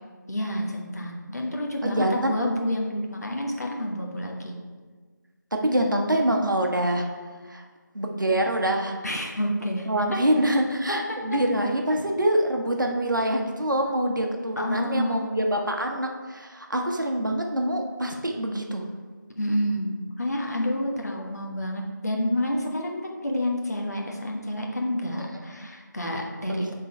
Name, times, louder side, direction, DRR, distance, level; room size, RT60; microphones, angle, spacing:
voice 1, 0.3-4.6 9.0-10.2 14.6-15.3 19.4-26.7, left 1 dB, 55° left, 0 dB, 1.1 m, -29 dB
voice 2, 1.8-2.4 5.5-7.0 7.5-7.6 7.9-8.9 9.9-18.9 25.2-25.6 26.5-26.7, right 1 dB, 75° right, 2 dB, 1.0 m, -25 dB
7.3 x 3.8 x 4.3 m, 1.4 s
figure-of-eight pair, 170°, 11 cm